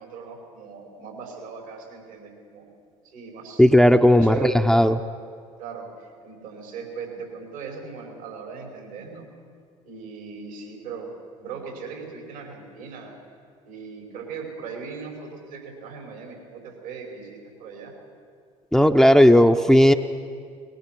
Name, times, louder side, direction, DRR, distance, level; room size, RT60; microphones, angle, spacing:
voice 1, 0.0-2.7 3.0-3.6 4.2-4.6 5.6-9.3 9.8-11.1 11.4-13.1 13.7-17.9, right 5 dB, 80° right, 0 dB, 6.0 m, -38 dB
voice 2, 3.6-5.0 18.7-19.9, equal, ahead, 6 dB, 0.9 m, -15 dB
22.0 x 20.5 x 6.2 m, 2.2 s
hypercardioid pair, 60°, 17 cm